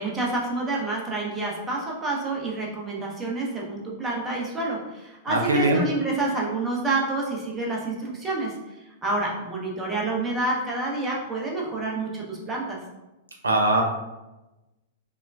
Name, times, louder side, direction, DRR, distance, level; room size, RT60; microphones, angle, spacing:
voice 1, 0.0-12.8, right 2 dB, 15° right, -2 dB, 0.8 m, -28 dB
voice 2, 5.3-5.8 13.4-13.8, right 1 dB, 75° right, 2 dB, 0.4 m, -21 dB
5.3 x 2.2 x 2.3 m, 1.0 s
figure-of-eight pair, 100°, 0 cm